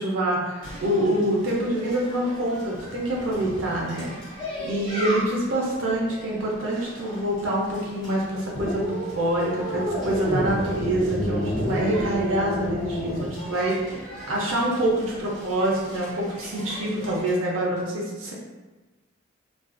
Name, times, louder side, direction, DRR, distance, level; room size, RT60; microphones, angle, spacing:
voice 1, 0.0-4.1 4.6-18.3, right 1 dB, 90° right, -4 dB, 0.6 m, -26 dB
sound 1, 0.6-17.3, equal, 20° left, 0.9 m, -39 dB
sound 2, 8.5-13.3, equal, 50° left, 0.7 m, -28 dB
2.4 x 2.4 x 2.5 m, 1.2 s
head